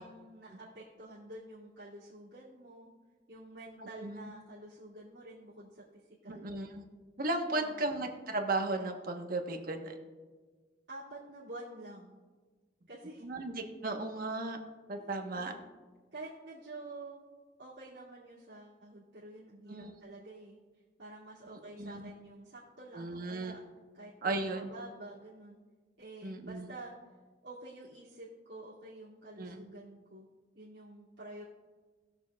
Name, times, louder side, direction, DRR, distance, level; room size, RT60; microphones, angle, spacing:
voice 1, 0.0-2.9 3.3-5.8 6.2-6.5 7.5-7.8 10.9-12.2 12.9-13.2 15.0-15.6 16.1-17.2 17.6-20.6 21.0-23.6 23.9-25.6 26.0-26.9 27.4-30.3 30.5-31.4, right 2 dB, 85° right, -10 dB, 2.2 m, -49 dB
voice 2, 3.8-4.3 6.3-6.8 7.2-10.0 13.2-14.6 14.9-15.5 19.7-19.9 21.8-22.1 22.9-23.5 24.2-24.7 26.2-26.7 29.4-29.6, right 2 dB, 55° right, 3 dB, 1.1 m, -35 dB
19.5 x 7.0 x 2.3 m, 1.4 s
head